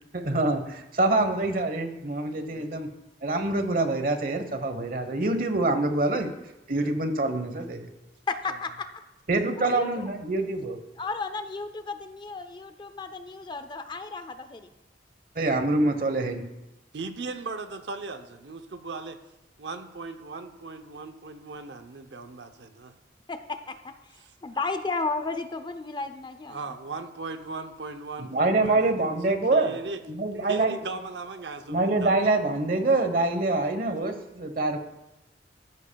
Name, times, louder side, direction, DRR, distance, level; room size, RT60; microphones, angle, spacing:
voice 1, 0.1-2.9 3.2-6.3 6.7-7.9 9.3-10.8 15.3-16.4 28.2-29.8 30.1-30.8 31.7-34.8, right 2 dB, 50° right, 7 dB, 1.1 m, -25 dB
voice 2, 8.3-8.9 9.6-10.1 11.0-14.7 23.3-26.6, left 3 dB, 25° left, 10 dB, 0.5 m, -33 dB
voice 3, 16.9-19.2 19.6-22.9 24.2-24.3 26.5-30.0 30.3-32.2, right 3 dB, 70° right, 8 dB, 0.7 m, -38 dB
14.0 x 10.5 x 2.3 m, 0.94 s
head